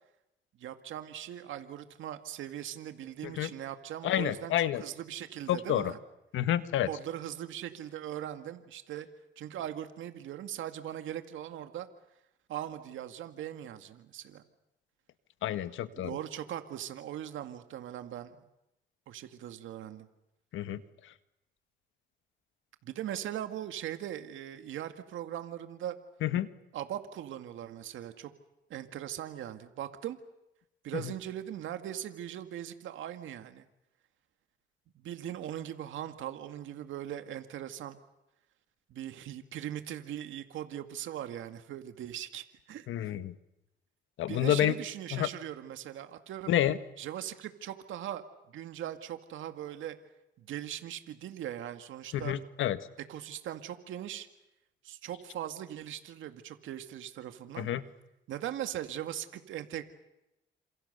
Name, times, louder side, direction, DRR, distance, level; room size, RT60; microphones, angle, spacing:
voice 1, 0.6-6.0 6.9-9.1 9.4-11.9 12.5-14.4 16.0-18.4 19.1-20.1 22.8-26.0 26.7-28.3 28.7-30.2 30.8-33.7 35.0-38.0 38.9-42.9 44.3-46.5 47.0-48.2 48.5-50.0 50.4-52.4 53.1-54.3 54.8-57.7 58.3-59.8, right 11 dB, 80° right, 8 dB, 2.1 m, -40 dB
voice 2, 4.0-4.8 5.5-5.9 6.3-6.9 15.4-16.1 20.5-20.8 26.2-26.5 42.9-43.3 44.2-44.7 45.1-45.3 46.5-46.8 52.1-52.8 57.6-57.8, left 12 dB, 80° left, 12 dB, 1.6 m, -29 dB
29.0 x 27.0 x 6.8 m, 0.90 s
cardioid pair, 90°, 20 cm